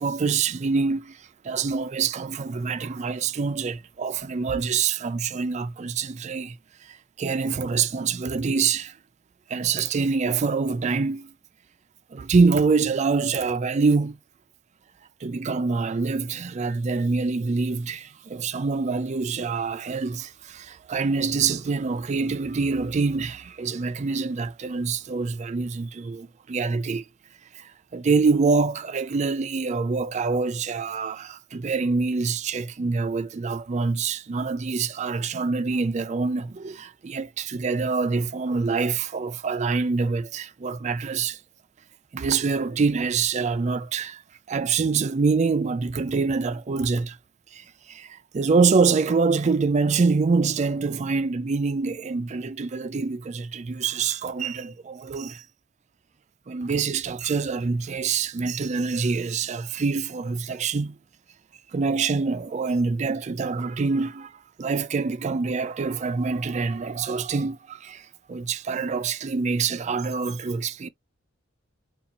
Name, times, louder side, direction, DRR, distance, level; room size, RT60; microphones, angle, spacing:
voice 1, 0.0-6.6 6.9-8.9 9.5-11.3 12.1-14.2 15.2-27.0 27.5-41.4 42.1-44.2 44.5-47.2 47.5-55.4 56.5-61.0 61.7-64.3 64.6-70.9, right 4 dB, 35° right, 0.4 m, -25 dB
2.7 x 2.4 x 3.9 m
head